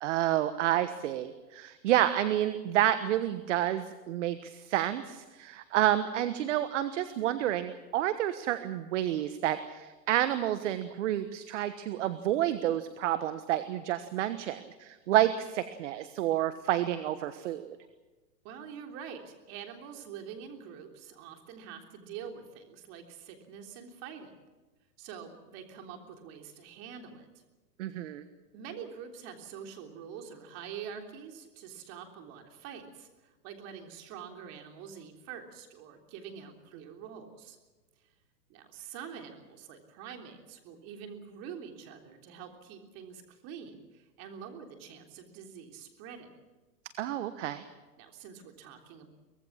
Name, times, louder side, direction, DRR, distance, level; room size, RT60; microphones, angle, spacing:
voice 1, 0.0-17.8 27.8-28.2 47.0-47.6, right 12 dB, 45° right, 11 dB, 1.4 m, -29 dB
voice 2, 18.4-24.3 25.0-27.3 28.5-37.6 38.5-46.3 48.0-49.1, right 7 dB, 30° right, 4 dB, 3.4 m, -45 dB
24.0 x 19.0 x 7.4 m, 1.2 s
hypercardioid pair, 155°, 49 cm